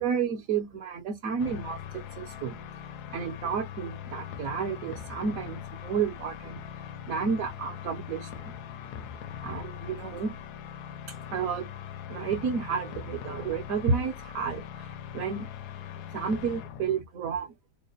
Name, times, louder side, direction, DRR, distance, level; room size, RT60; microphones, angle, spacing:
voice 1, 0.0-2.6 3.1-6.6 7.1-8.5 9.4-10.4 11.3-11.7 12.1-15.5 16.1-17.5, right 6 dB, 60° right, 1.0 m, -31 dB
sound 1, 1.4-17.0, left 9 dB, 75° left, 1.1 m, -41 dB
3.4 x 2.2 x 3.8 m
omnidirectional pair, 1.8 m